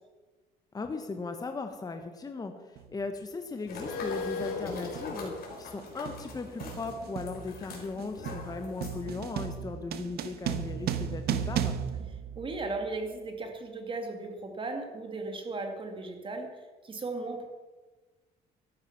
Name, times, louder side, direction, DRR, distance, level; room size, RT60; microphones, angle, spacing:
voice 1, 0.7-11.8, left 3 dB, 20° left, 6 dB, 1.2 m, -38 dB
sound 1, 2.8-2.9 3.9-4.1 4.4-12.9, right 8 dB, 70° right, 1.1 m, -36 dB
sound 2, 3.7-9.2, left 4 dB, 65° left, 4.2 m, -39 dB
voice 2, 12.4-17.4, right 3 dB, 30° right, 4 dB, 2.2 m, -36 dB
13.5 x 11.5 x 5.9 m, 1.3 s
cardioid pair, 110°, 17 cm